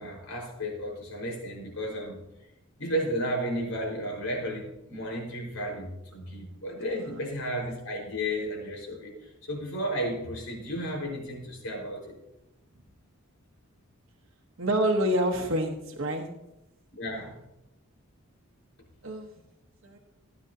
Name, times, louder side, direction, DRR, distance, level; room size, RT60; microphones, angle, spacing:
voice 1, 0.0-2.2 2.8-12.2 16.9-17.3, equal, 85° left, -1 dB, 4.5 m, -33 dB
voice 2, 14.6-16.3 19.0-19.3 19.8-20.0, right 1 dB, 65° right, 1 dB, 1.1 m, -27 dB
16.5 x 9.8 x 2.7 m, 0.91 s
head